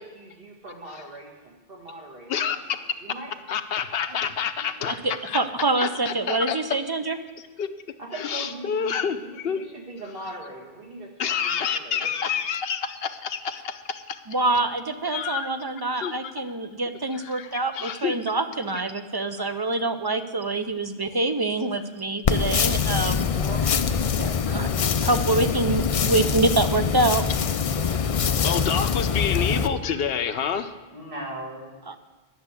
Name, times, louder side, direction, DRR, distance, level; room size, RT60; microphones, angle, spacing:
voice 1, 0.0-3.3 4.1-4.2 5.8-5.9 8.0-12.1 22.8-25.1 27.7-28.7 30.9-31.7, right 1 dB, 60° right, 0 dB, 2.0 m, -41 dB
voice 2, 3.5-5.4 5.8-6.6 7.6-7.7 8.1-9.6 11.2-14.2 15.1-15.5 16.0-16.3 17.1-18.2 23.0-23.1 28.4-30.7, left 7 dB, 70° left, 10 dB, 0.9 m, -28 dB
voice 3, 4.9-7.2 14.3-23.2 24.2-24.7 25.0-27.2 31.9-32.0, right 2 dB, 35° right, 9 dB, 0.4 m, -25 dB
sound 1, 22.2-29.7, left 6 dB, 50° left, 0.4 m, -24 dB
10.5 x 6.9 x 8.1 m, 1.3 s
omnidirectional pair, 1.0 m